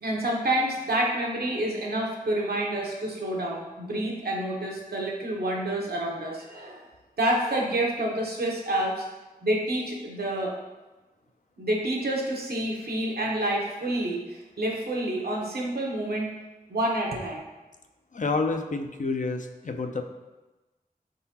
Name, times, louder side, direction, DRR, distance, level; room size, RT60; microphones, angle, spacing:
voice 1, 0.0-6.8 7.2-9.0 9.4-10.5 11.6-16.3 16.7-17.4, right 1 dB, 85° right, -2 dB, 0.8 m, -28 dB
voice 2, 18.1-20.0, left 3 dB, 55° left, 5 dB, 0.4 m, -29 dB
4.7 x 3.8 x 2.8 m, 1.1 s
wide cardioid pair, 50°, 16 cm